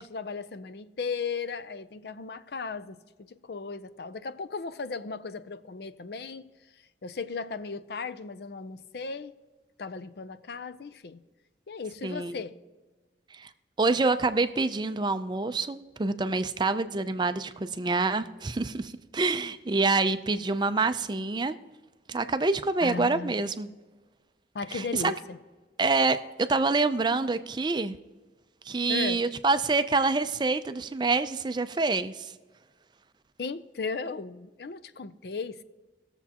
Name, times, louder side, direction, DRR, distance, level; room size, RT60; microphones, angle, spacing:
voice 1, 0.0-6.5 7.0-9.4 9.8-11.2 11.7-12.6 22.8-23.3 24.5-25.4 28.9-29.2 33.4-35.6, left 4 dB, 60° left, 0.5 m, -36 dB
voice 2, 12.0-12.4 13.3-13.5 13.8-21.6 22.1-23.7 24.7-25.1 25.8-28.0 28.7-32.3, right 3 dB, 25° right, 0.4 m, -26 dB
19.5 x 7.1 x 2.9 m
head